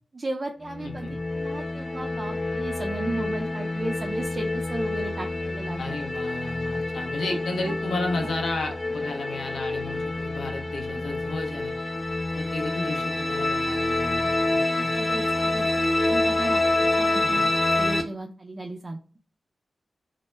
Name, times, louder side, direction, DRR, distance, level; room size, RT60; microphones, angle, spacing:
voice 1, 0.1-5.9 7.7-7.8 8.1-8.3 14.9-15.7 16.1-17.5 17.8-19.0, right 2 dB, 40° right, 3 dB, 0.3 m, -35 dB
sound 1, 0.6-18.0, left 2 dB, 35° left, 0.4 m, -27 dB
voice 2, 0.8-1.2 5.8-11.8 12.3-14.9 17.2-17.5, left 2 dB, 90° left, 2 dB, 0.6 m, -33 dB
2.1 x 2.0 x 3.1 m, 0.38 s
cardioid pair, 55°, 0 cm